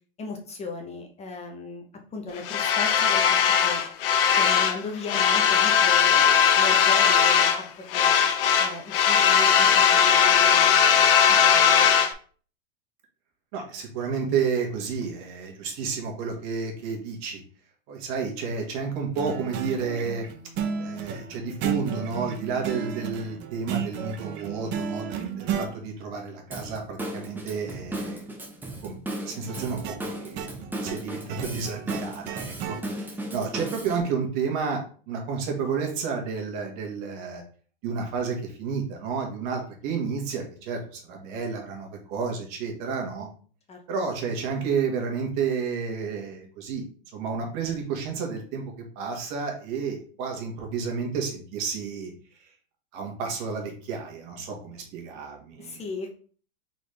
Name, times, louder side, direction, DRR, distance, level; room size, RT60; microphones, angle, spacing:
voice 1, 0.2-1.8 2.1-3.8 4.4-7.7 7.9-8.2 8.6-11.9 43.7-43.8 55.6-56.1, left 3 dB, 20° left, 2 dB, 0.9 m, -36 dB
sound 1, 2.4-4.8 5.0-7.6 7.9-12.1, left 7 dB, 70° left, 0.7 m, -19 dB
voice 2, 13.5-17.4 17.9-20.3 20.8-28.2 28.8-37.4 37.8-43.3 43.9-46.8 47.1-52.1 52.4-52.5 52.9-55.8, right 5 dB, 55° right, 2 dB, 1.6 m, -31 dB
sound 2, 19.1-25.7 29.5-32.8, right 7 dB, 40° right, 0.7 m, -33 dB
Drum kit / Drum, 26.5-34.0, right 1 dB, 5° right, 0.7 m, -36 dB
4.1 x 3.5 x 3.3 m, 0.42 s
supercardioid pair, 130°, 29 cm